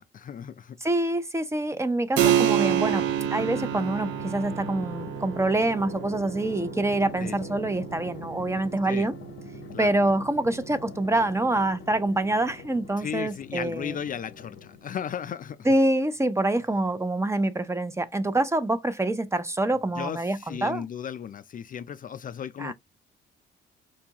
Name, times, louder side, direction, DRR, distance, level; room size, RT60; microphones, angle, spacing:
voice 1, 0.0-0.8 7.2-7.4 8.8-9.1 9.7-9.9 13.0-15.7 20.0-22.7, left 8 dB, 45° left, 0.4 m, -35 dB
voice 2, 0.8-9.1 9.8-14.0 15.6-20.9 22.6-22.7, right 1 dB, 15° right, 0.6 m, -26 dB
Keyboard (musical), 2.2-12.4, right 11 dB, 80° right, 0.6 m, -30 dB
Drum, 2.7-15.1, left 7 dB, 70° left, 0.9 m, -43 dB
4.4 x 2.4 x 2.8 m
cardioid pair, 90°, 20 cm